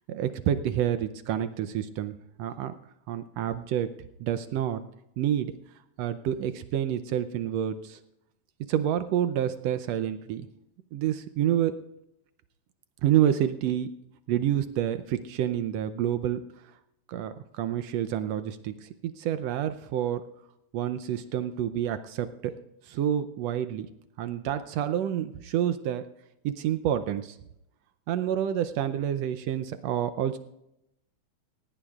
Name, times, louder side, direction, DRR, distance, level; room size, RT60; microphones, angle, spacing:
voice 1, 0.1-2.7 3.1-3.9 4.2-4.8 5.2-5.5 6.0-8.0 8.7-10.5 10.9-11.8 13.0-13.9 14.3-16.4 17.1-20.3 20.7-22.5 22.9-23.9 24.2-26.0 26.4-27.4 28.1-30.4, right 10 dB, 75° right, 11 dB, 1.6 m, -28 dB
18.5 x 17.0 x 2.4 m, 0.83 s
omnidirectional pair, 3.4 m